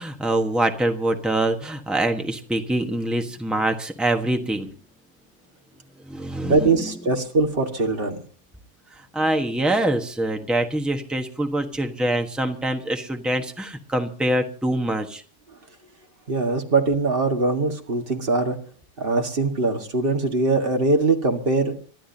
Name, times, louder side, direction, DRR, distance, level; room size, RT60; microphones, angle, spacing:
voice 1, 0.0-4.7 6.1-6.9 9.1-15.2, right 1 dB, ahead, 4 dB, 1.3 m, -24 dB
voice 2, 6.4-8.2 16.3-18.6 19.0-21.7, right 3 dB, 50° right, 3 dB, 2.0 m, -22 dB
29.0 x 12.5 x 2.8 m, 0.42 s
omnidirectional pair, 1.2 m